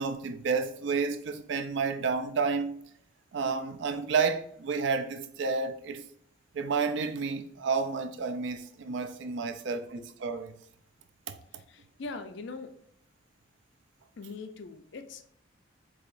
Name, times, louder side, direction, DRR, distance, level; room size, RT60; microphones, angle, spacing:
voice 1, 0.0-2.7 3.3-6.0 6.5-10.5 11.3-11.4, right 5 dB, 60° right, 0.4 m, -30 dB
voice 2, 11.5-12.8 14.2-15.2, left 3 dB, 60° left, 0.4 m, -42 dB
4.7 x 2.9 x 2.5 m
head